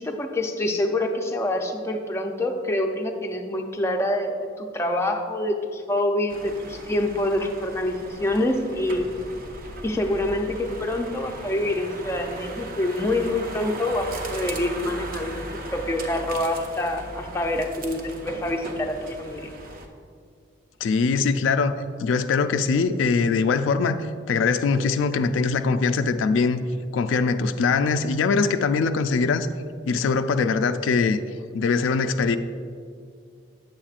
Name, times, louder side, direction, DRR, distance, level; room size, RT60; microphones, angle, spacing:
voice 1, 0.0-9.1 9.8-19.5, left 1 dB, 15° left, 2 dB, 0.5 m, -26 dB
sound 1, 6.3-19.9, right 1 dB, 45° right, 0.6 m, -38 dB
voice 2, 20.8-21.7 22.0-26.6 26.9-29.5 29.9-31.2 31.5-32.4, left 4 dB, 80° left, 10 dB, 0.3 m, -22 dB
9.0 x 7.3 x 2.4 m, 2.3 s
head